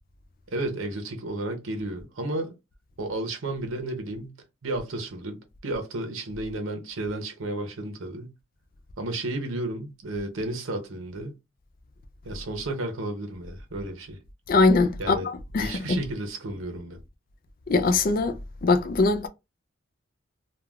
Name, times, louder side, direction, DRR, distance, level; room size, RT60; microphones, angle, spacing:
voice 1, 0.5-2.5 3.0-4.4 4.6-8.3 9.0-11.3 12.2-14.2 15.0-15.3 15.6-17.0, right 2 dB, 75° right, 0.7 m, -32 dB
voice 2, 14.5-15.2 15.5-16.0 17.7-19.3, left 3 dB, 45° left, 0.4 m, -22 dB
3.4 x 2.3 x 2.3 m
head